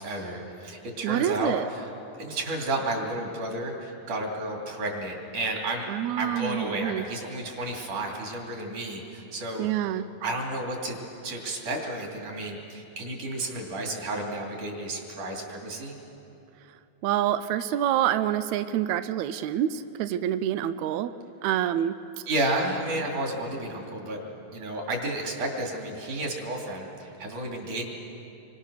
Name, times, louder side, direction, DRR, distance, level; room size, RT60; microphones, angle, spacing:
voice 1, 0.0-1.9 2.2-5.9 6.2-9.9 10.2-11.0 11.2-16.0 22.3-24.2 24.5-27.8, right 1 dB, 60° right, 0 dB, 4.5 m, -32 dB
voice 2, 1.0-1.7 5.9-7.0 9.6-10.1 17.0-21.1 21.4-21.9, right 11 dB, 80° right, 11 dB, 1.6 m, -27 dB
26.5 x 24.5 x 6.5 m, 2.9 s
omnidirectional pair, 3.9 m